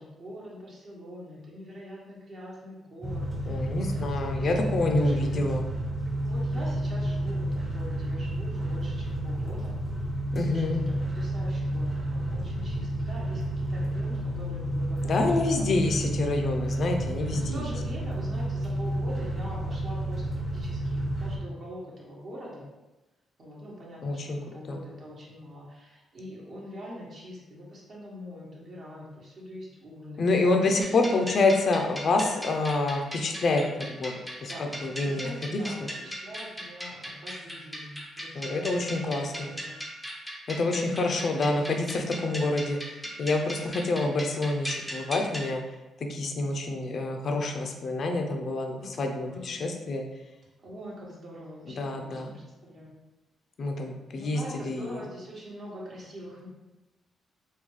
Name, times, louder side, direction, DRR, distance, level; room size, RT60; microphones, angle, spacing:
voice 1, 0.0-4.7 5.0-5.5 6.3-9.8 10.4-16.1 17.3-22.7 23.4-31.2 34.4-34.7 35.0-39.0 39.4-39.8 48.8-48.9 49.3-49.6 50.6-53.0 54.1-56.5, equal, 50° right, -5 dB, 1.0 m, -44 dB
sound 1, 3.0-21.4, right 1 dB, 25° right, 0.8 m, -30 dB
voice 2, 3.5-5.6 10.3-10.8 15.0-17.6 24.0-24.4 24.7-24.8 30.2-33.6 33.9-34.1 34.4-34.5 34.8-35.7 38.3-39.5 40.5-45.6 46.1-50.1 51.8-52.4 53.6-55.0, left 2 dB, 50° left, 4 dB, 0.5 m, -27 dB
sound 2, 30.8-45.5, equal, ahead, 0.5 m, -39 dB
3.7 x 2.2 x 3.1 m, 1.0 s
cardioid pair, 105°, 0 cm